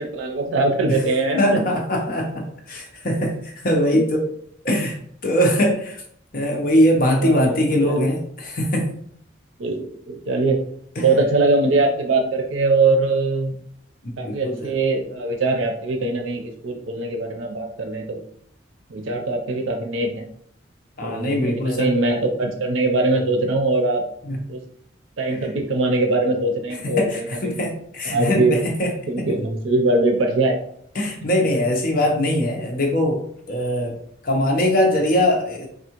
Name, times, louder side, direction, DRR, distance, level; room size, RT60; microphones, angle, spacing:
voice 1, 0.0-1.7 3.9-4.0 7.2-8.0 9.6-10.6 11.0-13.5 14.2-18.2 18.9-20.3 21.0-24.0 24.5-24.6 25.2-27.6 28.0-28.6 29.1-30.6 31.2-31.3, right 2 dB, 90° right, 3 dB, 0.5 m, -22 dB
voice 2, 1.4-4.2 4.6-5.0 5.2-6.0 6.3-8.9 11.0-11.1 14.0-14.7 21.0-21.9 24.3-24.4 26.8-28.9 29.2-29.3 31.0-33.2 33.5-33.9 34.2-35.7, equal, 45° left, 0 dB, 0.7 m, -21 dB
3.5 x 2.4 x 2.9 m, 0.67 s
head